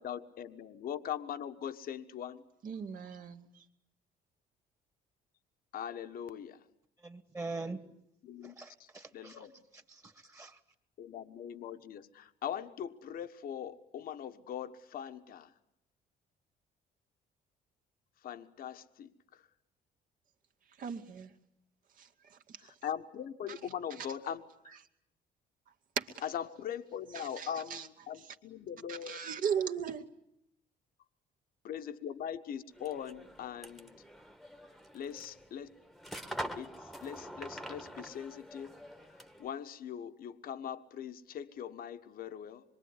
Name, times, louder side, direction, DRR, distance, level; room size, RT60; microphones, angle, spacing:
voice 1, 0.0-2.4 5.7-6.6 8.2-8.5 8.8-9.5 11.0-15.5 18.2-19.5 22.6-24.8 26.2-29.2 31.6-34.0 34.9-35.7 36.6-38.7 39.1-42.6, left 9 dB, 60° left, 1.4 m, -41 dB
voice 2, 2.6-3.6 20.8-21.3 22.0-22.6 26.0-26.2 27.1-27.9 28.9-30.0, right 7 dB, 55° right, 2.2 m, -37 dB
voice 3, 7.0-7.8 8.4-9.5 9.7-10.6, right 3 dB, 20° right, 2.0 m, -43 dB
sound 1, 32.7-39.5, equal, ahead, 1.5 m, -45 dB
25.5 x 22.5 x 9.9 m
cardioid pair, 110°, 17 cm